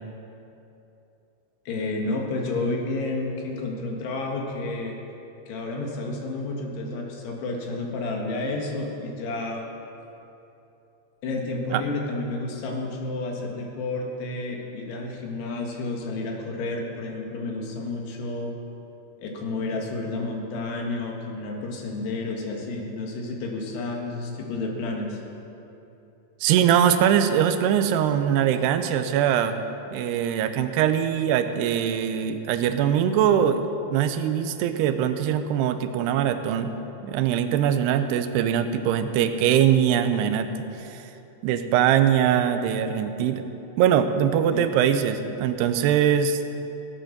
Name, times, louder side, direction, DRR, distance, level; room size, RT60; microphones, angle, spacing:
voice 1, 1.7-5.0 5.5-9.7 11.2-18.5 19.2-25.2 44.5-44.6, left 2 dB, 90° left, 0 dB, 3.8 m, -30 dB
voice 2, 26.4-29.6 29.9-36.7 37.0-40.5 40.8-41.0 41.4-43.5 43.8-46.4, right 9 dB, 85° right, 9 dB, 2.8 m, -22 dB
17.5 x 9.0 x 6.4 m, 2.9 s
omnidirectional pair, 4.6 m